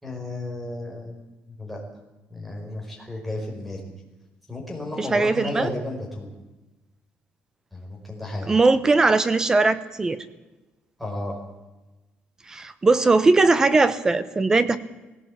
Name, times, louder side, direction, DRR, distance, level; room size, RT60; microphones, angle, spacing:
voice 1, 0.0-1.8 2.3-3.8 4.5-6.3 7.7-8.6 11.0-11.4, left 2 dB, ahead, -1 dB, 5.0 m, -33 dB
voice 2, 5.0-5.7 8.5-10.2 12.5-14.8, right 3 dB, 15° right, 14 dB, 0.8 m, -19 dB
19.0 x 17.0 x 8.6 m, 1.1 s
cardioid pair, 170°, 4 cm